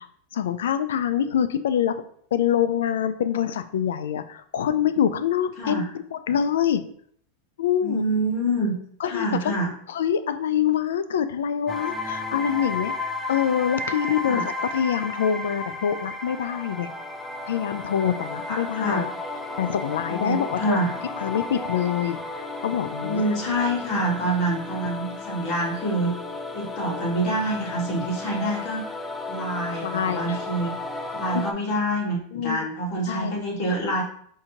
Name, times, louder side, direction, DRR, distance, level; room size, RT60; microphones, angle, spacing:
voice 1, 0.3-1.9 2.3-6.8 7.6-8.0 9.0-9.5 9.9-12.9 13.3-16.9 17.5-19.1 19.6-20.8 21.2-22.2 22.6-23.4 29.8-30.4 31.3-31.5 32.3-32.7 33.1-33.3, left 9 dB, 90° left, 12 dB, 0.3 m, -25 dB
voice 2, 7.8-8.7 9.1-9.7 14.2-14.4 18.5-19.0 20.1-20.9 23.0-26.1 26.5-28.8 29.3-30.7 31.1-34.0, right 1 dB, 45° left, -3 dB, 1.6 m, -26 dB
sound 1, 11.7-31.5, left 2 dB, 10° left, 0.4 m, -33 dB
4.9 x 2.7 x 2.8 m, 0.62 s
supercardioid pair, 140°, 0 cm